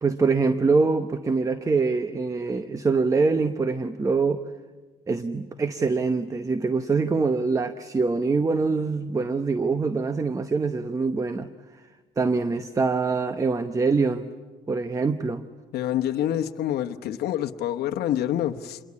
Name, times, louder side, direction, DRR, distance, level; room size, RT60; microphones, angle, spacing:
voice 1, 0.0-4.4 5.1-11.5 12.2-14.3 14.7-15.4, right 4 dB, 20° right, 10 dB, 0.9 m, -24 dB
voice 2, 15.7-18.8, left 11 dB, 70° left, 6 dB, 1.1 m, -27 dB
27.5 x 22.5 x 8.6 m, 1.3 s
cardioid pair, 110°, 17 cm